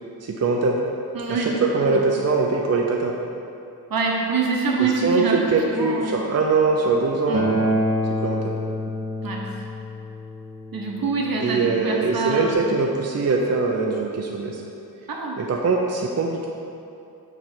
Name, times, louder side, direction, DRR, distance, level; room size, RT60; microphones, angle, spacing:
voice 1, 0.2-0.8 1.3-3.2 4.8-7.4 8.2-8.6 11.4-14.6 15.4-16.5, right 4 dB, 45° right, 0 dB, 0.5 m, -22 dB
voice 2, 1.1-2.2 3.9-6.3 7.3-7.5 9.2-9.5 10.7-12.7 15.1-15.4, right 4 dB, 70° right, -1 dB, 1.0 m, -26 dB
Acoustic guitar, 7.3-12.5, equal, 20° right, 1.0 m, -28 dB
7.0 x 3.3 x 5.9 m, 2.7 s
wide cardioid pair, 150°, 37 cm